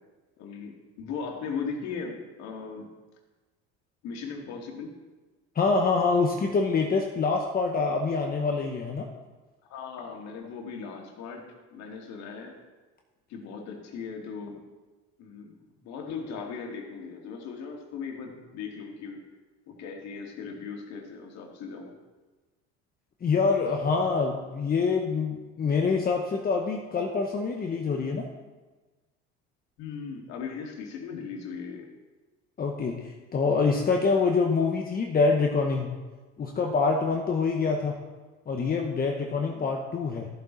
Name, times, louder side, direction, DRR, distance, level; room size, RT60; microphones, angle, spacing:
voice 1, 0.4-2.9 4.0-4.9 9.7-11.4 11.7-12.6 13.3-14.6 15.2-15.5 15.8-19.2 19.7-21.9 29.8-31.9 39.5-39.7, left 5 dB, 65° left, 1 dB, 2.4 m, -38 dB
voice 2, 5.5-9.1 23.2-28.3 32.6-35.9 36.4-38.0 38.5-40.3, left 4 dB, 30° left, 1 dB, 1.2 m, -25 dB
14.0 x 7.5 x 4.1 m, 1.2 s
supercardioid pair, 110°, 29 cm